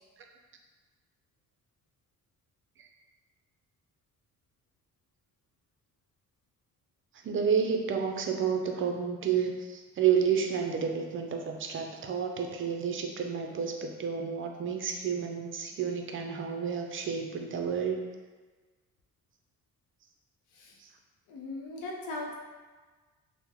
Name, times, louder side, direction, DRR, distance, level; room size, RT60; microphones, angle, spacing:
voice 1, 7.2-18.0 20.8-20.9, right 7 dB, 45° right, 3 dB, 0.4 m, -30 dB
voice 2, 21.3-22.3, left 2 dB, 85° left, -1 dB, 0.7 m, -38 dB
2.9 x 2.1 x 3.6 m, 1.4 s
cardioid pair, 90°, 30 cm